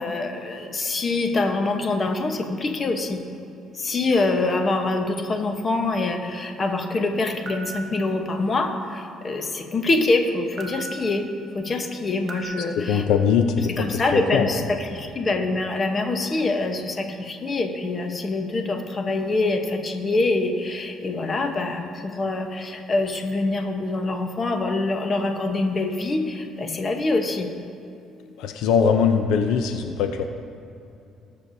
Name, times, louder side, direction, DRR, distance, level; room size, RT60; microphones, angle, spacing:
voice 1, 0.0-3.2 3.7-11.3 11.5-13.1 13.7-27.5, left 2 dB, 35° left, 4 dB, 1.0 m, -25 dB
sound 1, 7.5-7.7 9.9-10.0 10.6-10.9 12.3-12.4, right 4 dB, 50° right, 1.2 m, -35 dB
voice 2, 12.9-13.7 14.3-14.4 28.4-30.2, left 6 dB, 85° left, 6 dB, 0.5 m, -20 dB
19.0 x 6.7 x 2.7 m, 2.7 s
cardioid pair, 105°, 0 cm